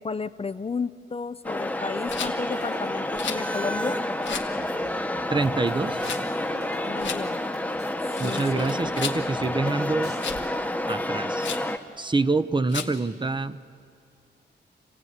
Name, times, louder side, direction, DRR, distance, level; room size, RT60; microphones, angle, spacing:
voice 1, 0.0-4.0 6.9-7.4 8.2-8.8, left 4 dB, 30° left, 11 dB, 0.6 m, -33 dB
sound 1, 1.4-11.8, left 1 dB, 10° left, 1.1 m, -29 dB
Rattle, 2.1-2.3 3.1-3.5 4.2-4.5 6.0-6.2 7.0-7.2 8.0-9.2 10.2-10.5 11.4-11.7 12.7-13.0, left 7 dB, 90° left, 1.7 m, -34 dB
sound 2, 2.5-4.0 4.5-8.0 8.2-8.3 8.5-10.5, right 2 dB, 60° right, 3.1 m, -46 dB
voice 2, 5.3-6.0 8.2-10.1 10.9-11.5 12.0-13.7, right 3 dB, 25° right, 13 dB, 0.8 m, -26 dB
28.5 x 16.5 x 9.5 m, 2.4 s
wide cardioid pair, 95°, 19 cm